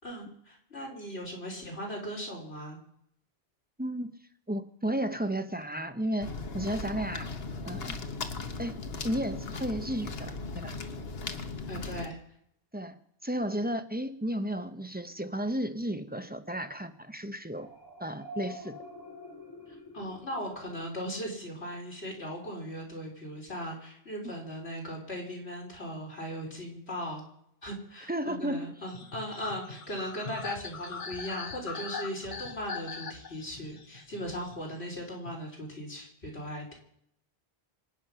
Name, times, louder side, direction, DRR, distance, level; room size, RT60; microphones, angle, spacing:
voice 1, 0.0-2.8 11.7-12.2 19.7-27.3 27.6-36.8, equal, 85° left, -1 dB, 4.6 m, -38 dB
voice 2, 3.8-4.1 4.5-7.3 7.7-8.0 8.6-8.8 9.0-10.8 12.7-12.9 13.2-17.7 18.0-18.7 28.1-28.6, right 1 dB, 10° right, 8 dB, 0.9 m, -33 dB
sound 1, 6.2-12.1, left 4 dB, 70° left, 1.5 m, -38 dB
sound 2, 17.6-21.3, left 2 dB, 20° left, 2.6 m, -47 dB
sound 3, 28.9-35.3, left 4 dB, 50° left, 1.2 m, -41 dB
25.5 x 9.7 x 5.8 m, 0.71 s
omnidirectional pair, 1.1 m